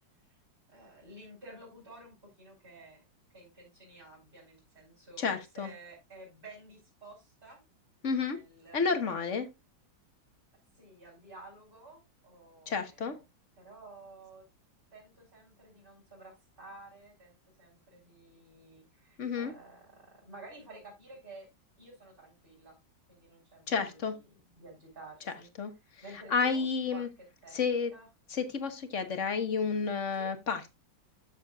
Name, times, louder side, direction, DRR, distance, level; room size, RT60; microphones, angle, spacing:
voice 1, 0.7-3.0 3.3-7.6 8.2-9.3 10.7-13.2 13.6-14.4 14.9-21.5 21.8-22.8 23.1-24.3 24.6-25.5 26.0-28.1 30.1-30.3, right 2 dB, 25° right, 5.6 m, -52 dB
voice 2, 5.2-5.7 8.0-8.4 8.7-9.5 12.7-13.2 19.2-19.5 23.7-24.2 25.6-25.7 26.3-27.1 27.5-27.9 28.3-30.7, left 5 dB, 40° left, 1.5 m, -30 dB
13.5 x 7.2 x 2.5 m
omnidirectional pair, 2.1 m